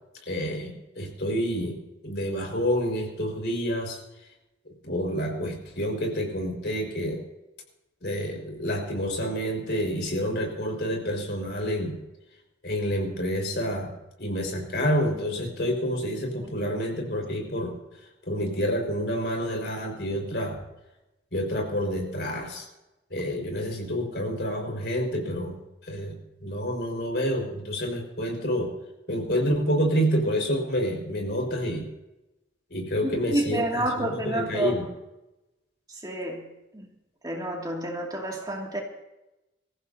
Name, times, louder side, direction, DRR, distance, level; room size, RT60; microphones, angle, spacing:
voice 1, 0.3-4.0 4.8-7.2 8.0-12.0 12.6-13.9 14.2-17.7 18.3-20.6 21.3-22.7 23.1-25.6 25.8-26.1 26.4-28.7 29.1-31.9 32.7-34.9, equal, 65° left, 5.3 m, -28 dB
voice 2, 33.0-34.8 35.9-36.5 36.7-36.8 37.2-38.8, right 1 dB, 20° right, 2.6 m, -29 dB
25.5 x 15.0 x 2.9 m
head